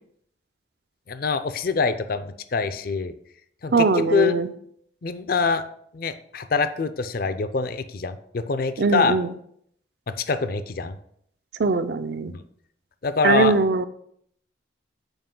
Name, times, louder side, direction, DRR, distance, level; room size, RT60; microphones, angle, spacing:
voice 1, 1.1-3.1 3.6-4.3 5.0-5.6 5.9-9.2 10.1-11.0 12.3-12.4 13.0-13.5, left 4 dB, 50° left, 11 dB, 0.4 m, -25 dB
voice 2, 3.7-4.5 8.8-9.3 11.6-12.3 13.2-13.9, right 4 dB, 60° right, 11 dB, 0.5 m, -21 dB
7.9 x 4.6 x 3.7 m, 0.68 s
head